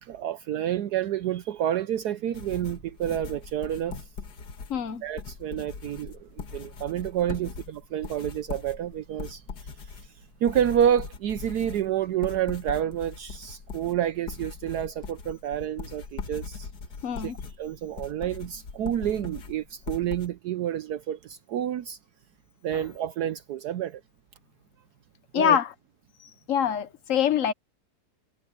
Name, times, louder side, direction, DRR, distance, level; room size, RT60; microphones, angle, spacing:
voice 1, 0.0-4.0 5.0-9.4 10.4-16.7 17.2-17.3 17.6-22.0 22.6-24.0 25.3-25.6, right 10 dB, 70° right, 1.1 m, -29 dB
sound 1, 2.3-20.3, left 5 dB, 70° left, 2.2 m, -40 dB
voice 2, 4.7-5.0 17.0-17.4 22.7-22.8 25.3-25.7 26.5-27.5, left 9 dB, 55° left, 1.1 m, -24 dB
omnidirectional pair, 1.9 m